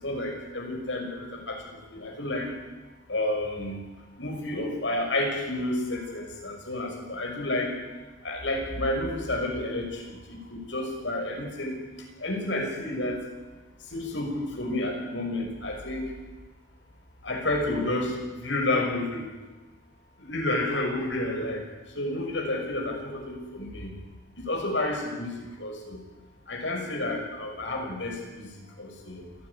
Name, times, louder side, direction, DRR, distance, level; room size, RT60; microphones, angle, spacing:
voice 1, 0.0-1.6 1.9-2.5 3.1-3.8 4.2-7.7 8.2-11.8 12.2-13.2 13.9-16.1 17.2-19.2 20.2-21.6 21.9-23.9 24.4-25.3 25.6-26.0 26.5-28.5 28.8-29.3, left 1 dB, 80° left, 1 dB, 6.0 m, -30 dB
27.5 x 12.0 x 10.0 m, 1.2 s
head